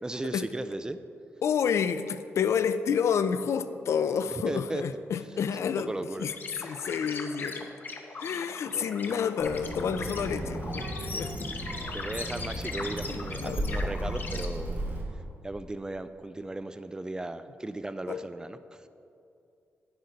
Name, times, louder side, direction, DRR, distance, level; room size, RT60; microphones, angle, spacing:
voice 1, 0.0-1.0 4.5-4.8 5.9-6.3 8.7-8.9 11.9-14.8 15.4-18.9, right 2 dB, 15° right, 11 dB, 0.3 m, -36 dB
voice 2, 1.4-5.9 6.2-6.3 6.6-7.7 8.2-11.5 13.1-13.8 18.1-18.2, left 7 dB, 70° left, 12 dB, 0.4 m, -29 dB
sound 1, 6.3-14.5, left 4 dB, 40° left, 0.8 m, -40 dB
Child speech kid speaking, 9.4-15.0, right 1 dB, 35° right, 1.7 m, -35 dB
10.5 x 9.6 x 4.0 m, 2.6 s
wide cardioid pair, 125°, 5 cm